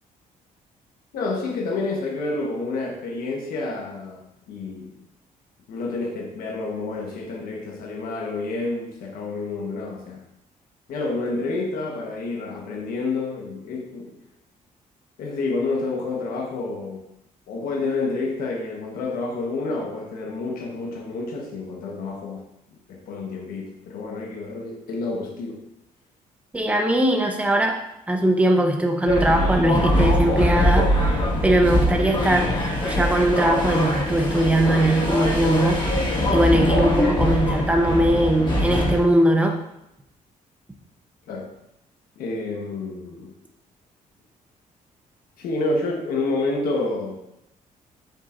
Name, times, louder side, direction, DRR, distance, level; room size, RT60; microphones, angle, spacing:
voice 1, 1.1-5.0 5.7-10.2 10.9-14.2 15.2-17.1 17.5-22.5 22.9-25.6 41.3-41.5 42.2-43.3 45.4-47.2, left 3 dB, 85° left, 0 dB, 1.2 m, -29 dB
voice 2, 26.5-27.8 28.1-31.1 31.4-32.5 32.8-35.8 36.3-39.6, right 1 dB, 10° right, 2 dB, 0.9 m, -20 dB
sound 1, 29.1-39.0, left 1 dB, 35° left, 1.6 m, -22 dB
7.8 x 7.1 x 2.5 m, 0.83 s
cardioid pair, 160°, 14 cm